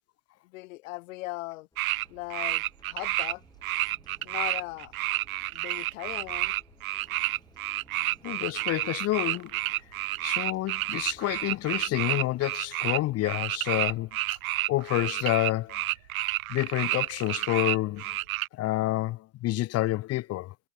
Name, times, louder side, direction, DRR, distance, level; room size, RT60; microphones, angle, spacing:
voice 1, 0.5-1.7 2.1-3.4 4.2-4.9 5.5-6.5, left 21 dB, 65° left, 1.8 m, -38 dB
sound 1, 1.7-12.5, left 2 dB, 10° left, 7.2 m, -59 dB
sound 2, 1.8-2.0 2.3-3.3 3.6-18.5, right 16 dB, 80° right, 0.5 m, -30 dB
voice 2, 8.2-9.5 10.2-14.1 14.7-15.8 16.5-18.1 18.5-20.5, left 16 dB, 35° left, 0.8 m, -28 dB
hypercardioid pair, 80°, 42 cm